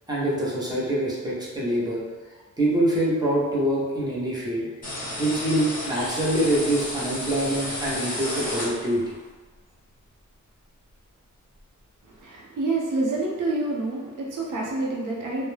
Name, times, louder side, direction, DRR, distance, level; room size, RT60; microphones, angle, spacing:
voice 1, 0.1-2.0 2.6-4.7 5.2-9.1, right 1 dB, 15° right, -6 dB, 0.7 m, -25 dB
sound 1, 4.8-9.2, left 1 dB, 30° left, 0.9 m, -32 dB
voice 2, 12.1-15.5, right 2 dB, 90° right, -3 dB, 0.7 m, -28 dB
2.2 x 2.1 x 3.2 m, 1.3 s
wide cardioid pair, 120°, 31 cm